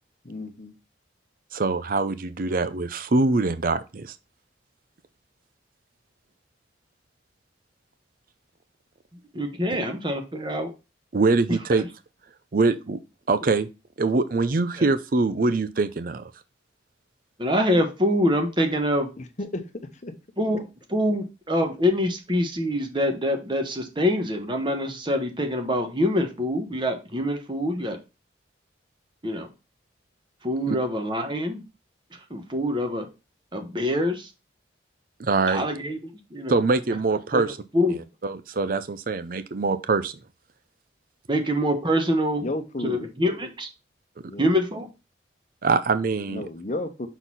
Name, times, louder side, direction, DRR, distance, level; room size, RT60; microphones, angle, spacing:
voice 1, 0.2-0.7 19.2-19.6 20.0-20.1 42.4-43.1 44.3-44.5 46.3-47.1, left 2 dB, 40° left, 0.9 m, -32 dB
voice 2, 1.5-4.1 11.1-11.8 12.5-13.0 13.3-13.7 14.0-16.2 30.7-30.8 35.2-35.7 36.5-37.5 37.9-38.0 38.2-40.1 45.6-46.4, right 3 dB, 50° right, 0.5 m, -23 dB
voice 3, 9.3-10.7 11.8-11.9 14.8-14.9 17.4-19.1 20.4-28.0 29.2-29.5 30.4-31.6 32.3-33.1 33.5-34.3 35.4-36.6 37.3-37.4 37.7-38.0 41.3-42.5 42.8-43.7 44.4-44.9, equal, 25° right, 1.1 m, -25 dB
6.2 x 4.0 x 4.0 m
head